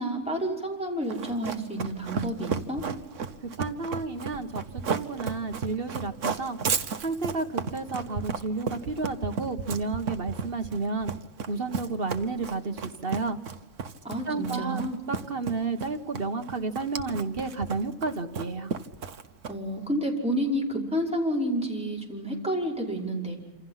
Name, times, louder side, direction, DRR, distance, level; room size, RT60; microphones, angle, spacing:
voice 1, 0.0-2.8 14.0-15.0 19.5-23.4, right 1 dB, 5° right, -3 dB, 5.5 m, -29 dB
Run, 1.1-19.8, right 6 dB, 60° right, 1.5 m, -33 dB
voice 2, 3.6-4.6 4.9-6.6 7.0-11.1 11.5-13.4 14.3-14.8 15.1-18.7, right 3 dB, 40° right, 6 dB, 1.5 m, -31 dB
27.5 x 27.5 x 5.8 m, 1.1 s
omnidirectional pair, 1.5 m